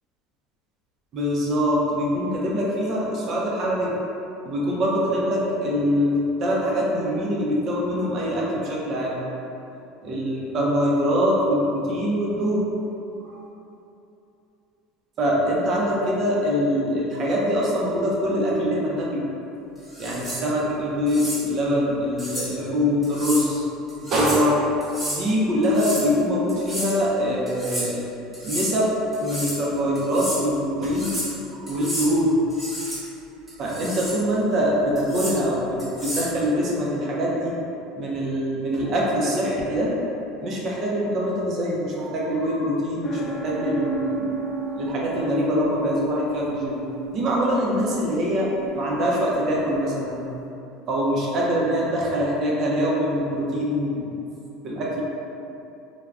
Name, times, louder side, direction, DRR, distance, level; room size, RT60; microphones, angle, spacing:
voice 1, 1.1-3.9 4.4-9.2 10.0-12.7 13.3-13.4 15.2-19.3 20.0-23.6 24.0-24.6 25.1-28.0 28.4-28.9 29.2-31.1 31.5-32.3 33.6-37.5 38.0-39.9 40.4-44.3 44.7-46.8 47.1-50.2 50.9-54.2 54.6-55.0, equal, 40° right, -4 dB, 0.6 m, -23 dB
sound 1, 19.9-20.4 21.1-21.4 22.2-22.5 23.0-23.5 23.9-24.5 24.8-25.2 25.6-26.1 26.5-27.0 27.5-27.9 28.3-28.7 29.1-29.6 29.9-30.4 30.8-31.3 31.7-32.1 32.5-33.0 33.5-34.2 35.0-35.4 35.8-36.3, equal, 15° right, 0.9 m, -31 dB
sound 2, 43.0-50.5, right 3 dB, 10° left, 0.5 m, -33 dB
3.3 x 2.2 x 2.4 m, 2.8 s
supercardioid pair, 135°, 0 cm